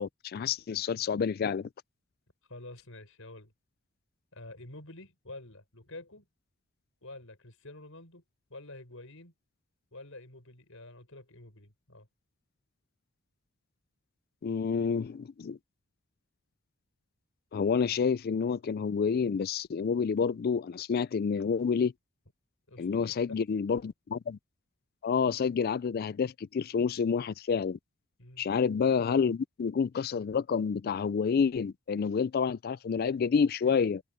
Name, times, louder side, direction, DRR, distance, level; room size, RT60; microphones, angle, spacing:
voice 1, 0.0-1.7 14.4-15.6 17.5-21.9 22.8-24.4 25.0-27.8 28.4-34.0, left 6 dB, 45° left, 0.3 m, -29 dB
voice 2, 2.5-3.5 4.3-6.3 7.0-8.2 8.5-9.3 9.9-12.1 22.7-23.4 28.2-28.5, left 2 dB, 65° left, 6.9 m, -48 dB
head